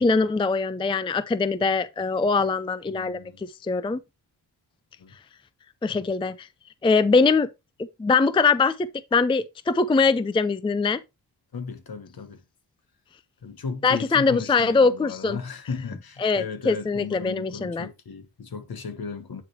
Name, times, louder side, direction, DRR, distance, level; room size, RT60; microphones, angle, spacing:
voice 1, 0.0-4.0 5.8-6.5 6.8-7.5 7.8-11.0 13.8-15.4 16.2-17.9, left 4 dB, 15° left, 0.4 m, -22 dB
voice 2, 2.9-3.4 5.0-5.1 5.9-6.1 11.5-12.4 13.4-19.4, left 5 dB, 55° left, 1.4 m, -36 dB
9.4 x 3.3 x 4.4 m
cardioid pair, 70°, 43 cm